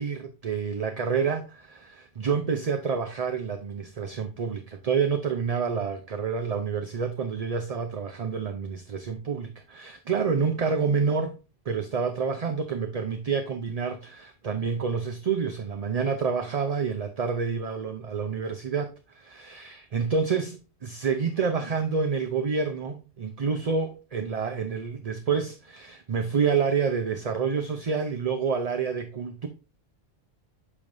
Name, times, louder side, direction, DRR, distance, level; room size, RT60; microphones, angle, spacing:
voice 1, 0.0-11.3 11.7-29.5, right 5 dB, 45° right, 0.7 m, -28 dB
8.4 x 5.2 x 2.6 m
omnidirectional pair, 1.0 m